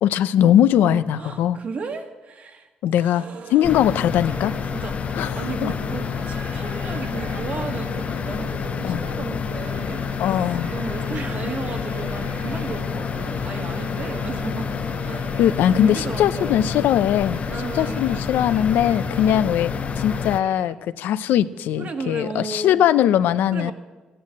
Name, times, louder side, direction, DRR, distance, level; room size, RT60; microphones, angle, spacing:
voice 1, 0.0-1.6 2.8-3.2 3.5-4.5 5.2-5.3 5.6-5.7 8.8-9.0 10.2-10.7 15.4-17.4 17.7-19.7 20.0-23.7, left 10 dB, 85° left, 13 dB, 0.7 m, -20 dB
voice 2, 0.8-2.7 3.0-3.5 4.7-15.4 15.8-16.7 17.5-18.4 19.1-19.6 21.8-22.8 23.5-23.7, right 4 dB, 50° right, 4 dB, 2.1 m, -34 dB
sound 1, 3.1-20.7, right 6 dB, 80° right, 1.4 m, -41 dB
sound 2, 3.6-20.4, left 6 dB, 45° left, 0.6 m, -28 dB
16.0 x 10.5 x 8.6 m, 1.2 s
cardioid pair, 95°, 3 cm